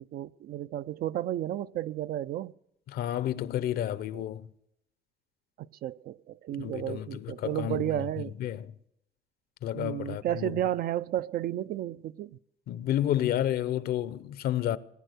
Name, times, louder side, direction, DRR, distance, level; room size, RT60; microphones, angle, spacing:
voice 1, 0.0-2.5 4.1-4.2 5.8-8.3 9.7-12.4, right 12 dB, 60° right, 0.5 m, -32 dB
voice 2, 2.9-4.5 6.6-8.7 9.6-10.6 12.7-14.8, left 12 dB, 65° left, 0.7 m, -31 dB
19.0 x 10.0 x 6.6 m
cardioid pair, 110°, 17 cm